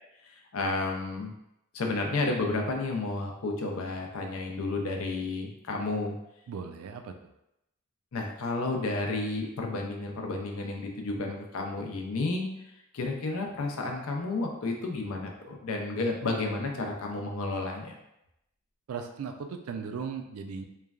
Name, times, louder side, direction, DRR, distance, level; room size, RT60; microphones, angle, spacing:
voice 1, 0.3-1.3 1.7-6.2 8.1-12.5 12.9-17.9, left 3 dB, 80° left, 1 dB, 0.5 m, -31 dB
voice 2, 6.5-7.3 18.9-20.6, right 6 dB, 80° right, 6 dB, 0.3 m, -37 dB
3.0 x 2.2 x 2.4 m, 0.84 s
head